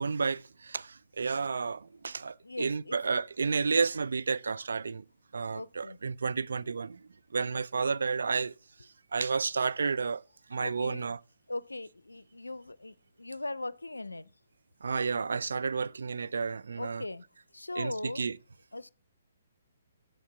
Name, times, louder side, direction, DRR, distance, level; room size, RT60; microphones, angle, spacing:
voice 1, 0.0-5.0 5.3-7.0 7.3-8.5 9.1-10.2 10.5-11.2 14.8-17.0 17.8-18.4, right 5 dB, 70° right, 0.5 m, -31 dB
voice 2, 2.4-3.0 5.5-6.0 10.5-11.1 11.5-14.3 16.8-17.2 17.5-18.2 18.7-18.9, left 2 dB, 85° left, 0.5 m, -39 dB
7.7 x 7.1 x 6.9 m
figure-of-eight pair, 135°, 0 cm